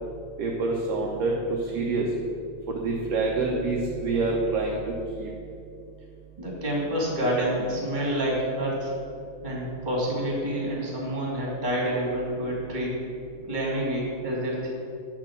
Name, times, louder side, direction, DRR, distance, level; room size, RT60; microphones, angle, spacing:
voice 1, 0.4-2.1 2.7-5.3, right 3 dB, 70° right, -1 dB, 1.6 m, -27 dB
voice 2, 6.4-8.9 9.4-12.9 13.4-14.7, right 1 dB, 15° right, -4 dB, 2.3 m, -28 dB
8.4 x 7.3 x 7.4 m, 2.5 s
omnidirectional pair, 3.9 m